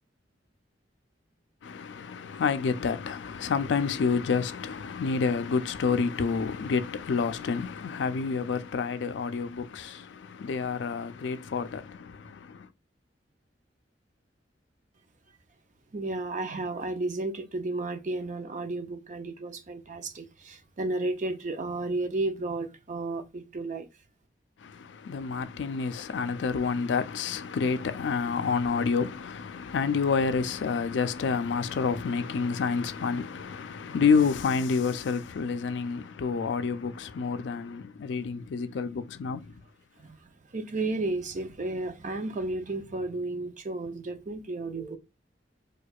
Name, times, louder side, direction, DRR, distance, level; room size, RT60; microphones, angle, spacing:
voice 1, 1.6-12.7 24.6-39.5, left 5 dB, 70° left, 0.4 m, -29 dB
voice 2, 15.9-23.9 40.0-40.1 40.5-45.0, right 2 dB, 45° right, 0.6 m, -33 dB
4.6 x 2.3 x 2.3 m
head